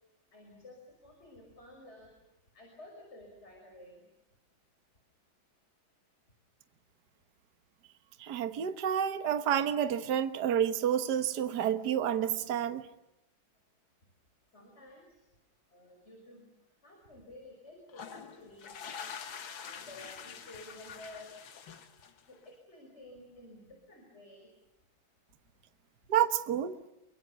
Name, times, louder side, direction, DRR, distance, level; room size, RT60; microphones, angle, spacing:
voice 1, 0.3-2.2 2.5-4.1 14.5-15.3 15.7-18.7 19.4-21.3 22.0-24.5, left 1 dB, 30° left, 6.5 m, -53 dB
voice 2, 8.2-12.8 26.1-26.8, right 9 dB, 55° right, 1.7 m, -29 dB
sound 1, 17.9-22.4, left 7 dB, 75° left, 2.3 m, -45 dB
28.5 x 24.0 x 7.0 m
omnidirectional pair, 2.2 m